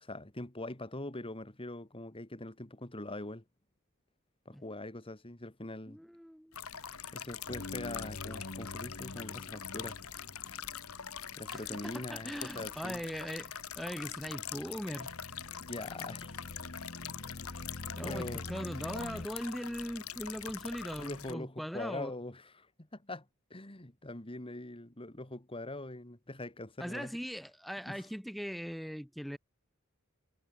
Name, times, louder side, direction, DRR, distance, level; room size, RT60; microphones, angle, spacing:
voice 1, 0.0-3.4 4.5-6.0 7.1-10.0 11.4-13.0 15.7-16.3 17.4-17.6 18.0-18.5 21.0-27.1 27.9-28.0, left 2 dB, 25° left, 2.6 m, -43 dB
voice 2, 5.9-6.6 11.5-15.4 17.9-22.1 26.8-29.4, equal, ahead, 3.6 m, -40 dB
sound 1, 6.5-21.3, left 8 dB, 85° left, 2.5 m, -43 dB
sound 2, 7.5-11.7 14.2-19.3, left 2 dB, 55° left, 1.5 m, -46 dB
head